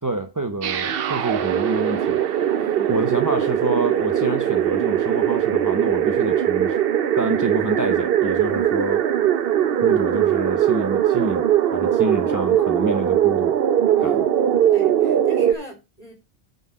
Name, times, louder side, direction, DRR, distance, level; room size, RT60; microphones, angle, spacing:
voice 1, 0.0-2.2 2.9-6.8 7.2-9.1 9.8-11.5 11.7-13.6 14.0-14.2, right 2 dB, 20° right, 0.8 m, -27 dB
sound 1, 0.6-15.5, right 10 dB, 65° right, 0.9 m, -20 dB
voice 2, 2.5-3.0 13.9-14.3 14.7-16.1, right 2 dB, 35° left, 3.5 m, -39 dB
9.4 x 4.1 x 6.2 m
omnidirectional pair, 1.1 m